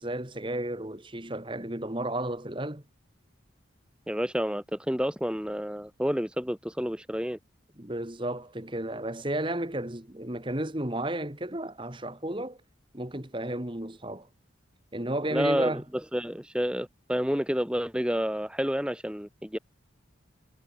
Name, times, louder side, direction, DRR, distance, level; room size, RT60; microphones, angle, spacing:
voice 1, 0.0-2.8 7.8-12.6 12.9-14.3 14.9-15.8, right 1 dB, 25° right, 1.9 m, -33 dB
voice 2, 4.1-7.4 15.3-19.6, equal, 5° right, 1.8 m, -29 dB
head